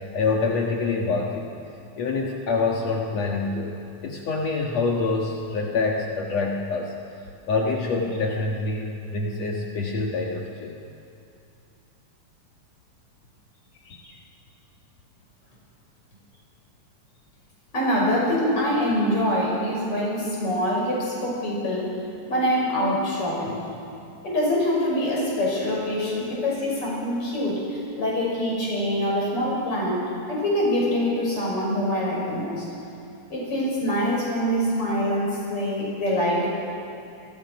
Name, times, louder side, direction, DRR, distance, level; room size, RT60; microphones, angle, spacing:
voice 1, 0.1-1.5 2.0-3.8 4.0-6.9 7.5-10.8 13.9-14.2, left 3 dB, 60° left, -1 dB, 2.6 m, -26 dB
voice 2, 17.7-22.0 22.3-23.6 24.2-32.7 33.3-36.5, equal, 40° left, -3 dB, 7.1 m, -24 dB
28.5 x 23.0 x 6.0 m, 2.6 s
omnidirectional pair, 3.7 m